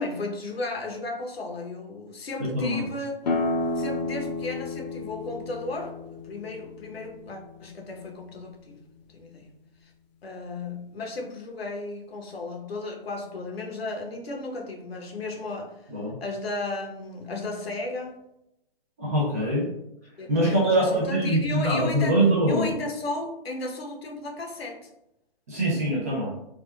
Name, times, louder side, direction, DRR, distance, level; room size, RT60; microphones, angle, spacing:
voice 1, 0.0-3.2 3.7-8.8 9.1-9.5 9.8-9.9 10.2-15.9 16.2-18.1 20.2-24.9, left 2 dB, 80° left, 1 dB, 0.8 m, -34 dB
sound 1, 3.2-8.6, left 2 dB, 45° left, 0.5 m, -32 dB
voice 2, 19.0-19.7 20.3-22.7 25.5-26.3, right 1 dB, 15° right, -4 dB, 0.3 m, -23 dB
3.4 x 2.2 x 2.2 m, 0.84 s
hypercardioid pair, 140°, 30 cm